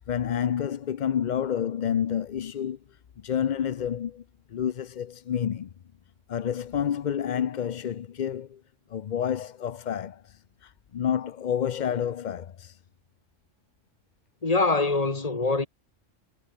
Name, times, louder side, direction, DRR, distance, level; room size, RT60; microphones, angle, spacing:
voice 1, 0.1-2.8 3.2-4.2 4.5-5.7 6.3-8.6 8.9-12.8, left 9 dB, 50° left, 0.6 m, -29 dB
voice 2, 14.4-15.7, left 3 dB, 30° left, 1.8 m, -24 dB
omnidirectional pair, 1.3 m